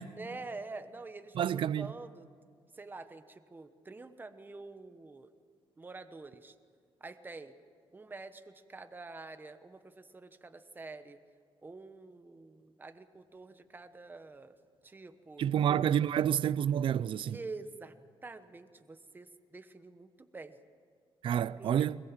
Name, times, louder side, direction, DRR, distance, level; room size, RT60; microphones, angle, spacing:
voice 1, 0.2-2.3 2.7-5.3 5.8-6.5 7.0-7.5 7.9-11.2 11.6-14.6 14.8-15.4 15.9-16.1 17.3-18.0 18.2-20.6 21.6-22.0, right 3 dB, 20° right, 1.1 m, -47 dB
voice 2, 1.4-1.9 15.4-17.4 21.2-22.0, right 9 dB, 65° right, 0.5 m, -29 dB
22.0 x 22.0 x 7.3 m
cardioid pair, 125°, 9 cm